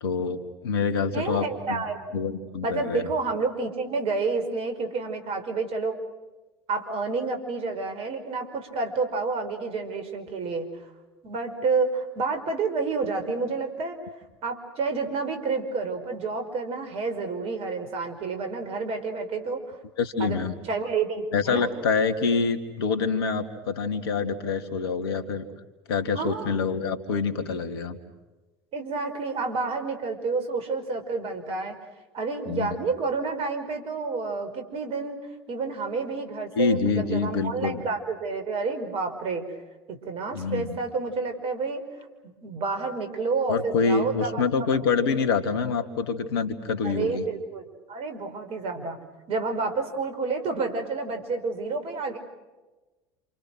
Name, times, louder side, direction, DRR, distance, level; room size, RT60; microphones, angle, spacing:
voice 1, 0.0-1.8 2.1-3.1 20.0-20.5 21.3-25.4 25.9-28.0 32.5-32.7 36.6-37.8 40.3-40.8 43.5-47.2, left 5 dB, 70° left, 6 dB, 2.4 m, -26 dB
voice 2, 1.1-2.2 2.6-6.0 6.7-10.7 11.2-14.0 14.4-19.8 20.2-21.7 26.2-26.6 28.7-31.8 32.1-35.2 35.5-39.4 39.9-41.8 42.2-44.4 46.8-49.0 49.3-52.2, right 4 dB, 50° right, 7 dB, 5.2 m, -29 dB
28.5 x 28.0 x 6.4 m, 1.1 s
figure-of-eight pair, 70°, 13 cm